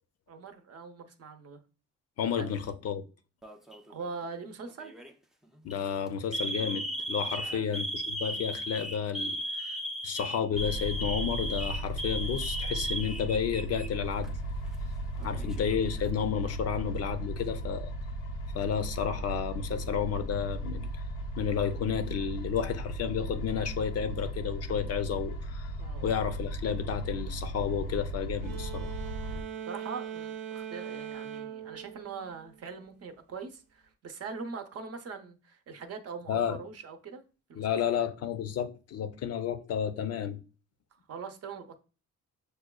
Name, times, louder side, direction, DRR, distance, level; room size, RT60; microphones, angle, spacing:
voice 1, 0.3-1.6 2.4-2.5 3.9-4.9 7.2-7.7 15.2-15.5 25.8-26.0 29.7-37.2 37.5-37.9 41.1-41.8, right 5 dB, 55° right, 0.7 m, -42 dB
voice 2, 2.2-3.0 5.6-9.8 10.0-14.3 15.2-17.9 18.5-20.9 21.4-25.7 26.0-28.9 36.3-36.6 37.6-40.4, left 8 dB, 55° left, 0.5 m, -31 dB
Alarm, 3.4-3.9 4.8-5.1 5.6-5.7 6.3-13.9 14.2-14.3 15.2-15.9, right 1 dB, ahead, 0.4 m, -36 dB
sound 1, 10.5-29.4, right 1 dB, 90° left, 0.7 m, -36 dB
sound 2, 28.4-32.9, right 9 dB, 85° right, 0.7 m, -41 dB
6.3 x 2.2 x 2.2 m
cardioid pair, 90°, 30 cm